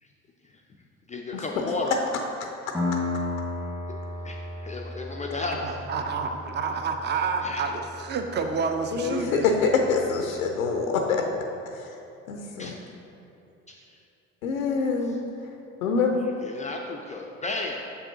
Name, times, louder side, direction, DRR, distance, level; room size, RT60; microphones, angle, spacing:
voice 1, 1.1-2.0 4.2-4.4 4.7-5.7 6.5-6.6 7.4-7.7 12.4-12.8 13.7-14.0 15.0-15.2 15.8-15.9 16.4-17.8, left 3 dB, 20° left, 0 dB, 0.4 m, -34 dB
Piano, 2.7-10.1, left 2 dB, 5° right, 1.0 m, -35 dB
voice 2, 5.6-9.6, right 5 dB, 25° right, 5 dB, 0.6 m, -29 dB
voice 3, 8.9-11.2 11.8-11.9 12.3-12.7 14.4-15.2 15.8-16.1, left 5 dB, 85° left, 3 dB, 0.5 m, -25 dB
6.8 x 5.3 x 2.8 m, 2.7 s
figure-of-eight pair, 55°, 40 cm